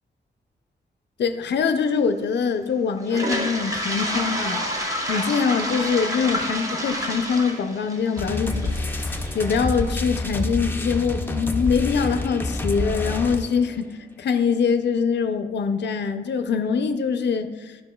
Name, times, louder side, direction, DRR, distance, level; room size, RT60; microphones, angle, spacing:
voice 1, 1.2-13.9 14.2-17.8, left 6 dB, 75° left, 8 dB, 0.4 m, -24 dB
Toilet flush, 3.0-10.9, equal, 20° right, 0.8 m, -29 dB
sound 1, 8.2-13.7, left 2 dB, 10° left, 0.4 m, -28 dB
11.5 x 5.5 x 2.2 m, 1.3 s
wide cardioid pair, 170°, 18 cm